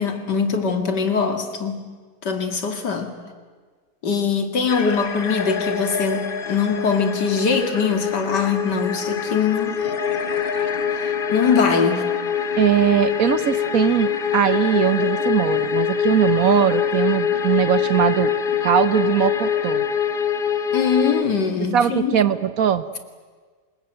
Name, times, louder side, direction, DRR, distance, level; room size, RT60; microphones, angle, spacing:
voice 1, 0.0-1.9 2.2-3.1 4.0-9.8 11.0-12.1 20.7-22.2, left 5 dB, 85° left, 7 dB, 2.9 m, -22 dB
sound 1, 4.7-21.2, left 7 dB, 40° left, 1.0 m, -24 dB
voice 2, 12.6-18.3 18.6-19.8 21.7-22.9, right 9 dB, 60° right, 14 dB, 1.3 m, -20 dB
26.0 x 21.0 x 9.1 m, 1.5 s
omnidirectional pair, 1.8 m